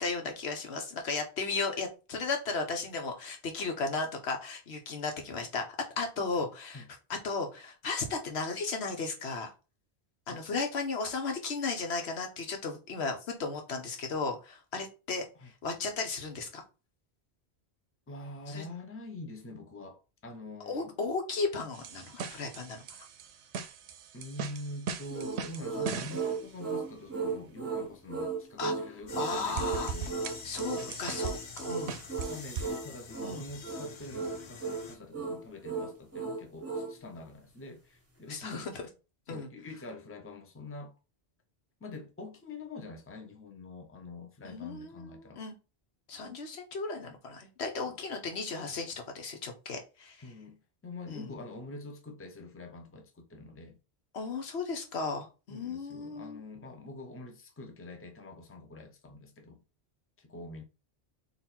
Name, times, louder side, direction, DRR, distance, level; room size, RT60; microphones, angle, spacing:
voice 1, 0.0-5.6 6.0-6.8 7.2-9.5 10.3-15.2 15.6-16.6 18.5-18.6 20.7-23.1 25.8-25.9 28.6-28.7 29.2-29.9 30.4-32.0 33.2-33.4 38.3-38.7 39.3-39.5 44.4-45.5 46.1-50.2 51.1-51.2 54.1-56.4, left 4 dB, 85° left, 1.2 m, -35 dB
voice 2, 18.1-21.0 24.1-30.2 30.7-31.0 31.8-38.7 39.3-40.9 41.8-45.4 47.8-48.0 50.2-53.8 55.5-59.6 60.2-60.6, left 2 dB, 15° left, 0.6 m, -45 dB
sound 1, 21.7-26.5 29.0-29.1 29.6-32.8, right 6 dB, 90° right, 0.9 m, -40 dB
sound 2, 25.1-37.0, right 4 dB, 15° right, 0.9 m, -36 dB
sound 3, 29.1-35.0, left 6 dB, 55° left, 0.3 m, -46 dB
4.0 x 2.7 x 4.2 m
omnidirectional pair, 1.1 m